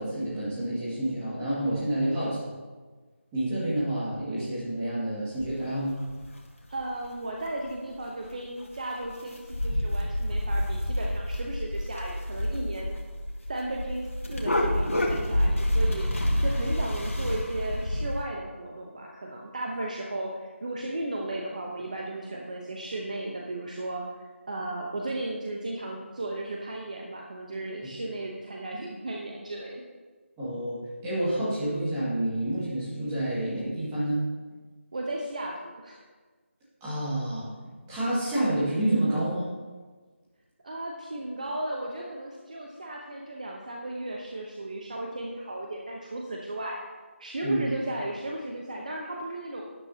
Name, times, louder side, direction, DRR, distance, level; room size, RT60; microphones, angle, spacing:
voice 1, 0.0-2.4 3.3-6.0 30.4-34.2 36.8-37.5 37.9-39.5 47.4-47.6, right 1 dB, 10° right, -10 dB, 1.9 m, -28 dB
voice 2, 2.0-2.4 6.7-13.0 13.5-24.0 24.5-29.8 34.9-36.0 40.6-46.8 47.2-49.6, right 1 dB, 35° right, -1 dB, 0.8 m, -35 dB
sound 1, 5.4-5.5 6.1-6.3 6.8-6.9 7.3-7.4 7.5-8.0 8.3-8.4 8.6-8.7 9.0-18.3, left 1 dB, 85° left, 1.9 m, -28 dB
12.0 x 10.0 x 2.8 m, 1.4 s
figure-of-eight pair, 175°, 7 cm